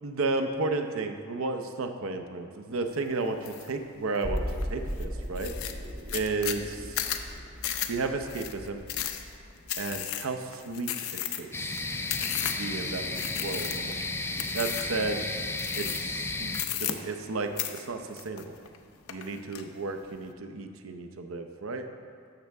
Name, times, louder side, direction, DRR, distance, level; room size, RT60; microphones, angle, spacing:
voice 1, 0.0-4.4 4.7-5.5 6.1-7.0 7.9-8.8 9.8-11.1 11.4-11.7 12.6-14.0 14.5-15.2 15.8-16.5 16.8-18.6 19.1-21.9, right 3 dB, 70° right, 6 dB, 0.7 m, -33 dB
sound 1, 3.4-3.7 4.1-4.6 5.0-5.1 5.4-12.7 13.1-14.0 14.4-15.0 15.6-16.2 16.5-17.3 17.6-18.8 19.1-19.6, left 11 dB, 80° left, 0.6 m, -34 dB
sound 2, 4.2-10.2 10.5-10.6, equal, 40° right, 1.3 m, -38 dB
sound 3, 11.5-16.6, left 3 dB, 10° left, 0.4 m, -33 dB
12.5 x 6.6 x 3.5 m, 2.2 s
head